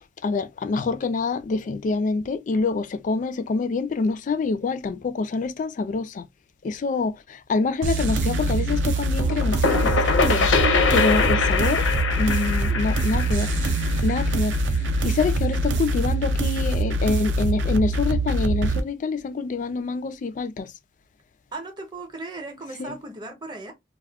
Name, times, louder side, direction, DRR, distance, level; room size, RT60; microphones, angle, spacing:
voice 1, 0.2-6.3 6.6-11.9 12.2-13.5 14.0-14.6 15.0-20.7 22.8-23.0, left 4 dB, 45° left, 0.3 m, -26 dB
sound 1, 7.8-18.8, right 2 dB, 70° right, 0.4 m, -24 dB
sound 2, 9.2-14.8, left 4 dB, 85° left, 0.6 m, -23 dB
voice 2, 21.5-23.7, right 2 dB, 25° right, 0.7 m, -36 dB
2.3 x 2.0 x 3.3 m
head